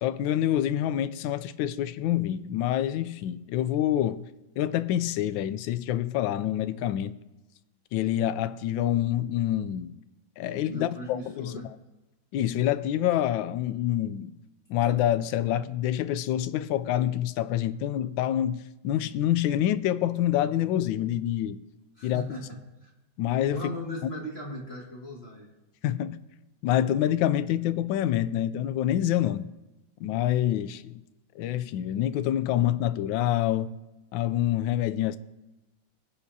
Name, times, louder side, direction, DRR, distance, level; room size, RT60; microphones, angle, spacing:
voice 1, 0.0-4.2 4.6-7.2 7.9-9.9 10.4-11.5 12.3-14.3 14.7-21.6 22.0-22.2 23.2-23.6 25.8-26.2 26.6-29.5 30.0-30.9 31.4-33.8 34.1-35.2, left 12 dB, 75° left, 1.2 m, -26 dB
voice 2, 10.7-11.7 22.0-22.9 23.5-25.5, left 1 dB, 30° left, 2.2 m, -38 dB
22.0 x 8.5 x 2.8 m
omnidirectional pair, 2.3 m